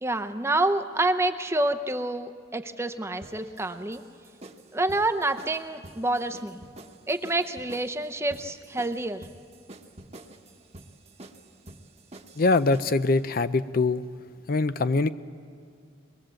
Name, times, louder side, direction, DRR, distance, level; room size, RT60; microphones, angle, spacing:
voice 1, 0.0-4.0 4.7-6.6 7.1-9.3, right 2 dB, 15° right, 0.7 m, -28 dB
sound 1, 3.2-13.1, right 2 dB, 35° right, 1.1 m, -48 dB
voice 2, 12.4-14.0 14.5-15.1, left 3 dB, 50° left, 0.5 m, -23 dB
22.5 x 21.5 x 7.7 m
head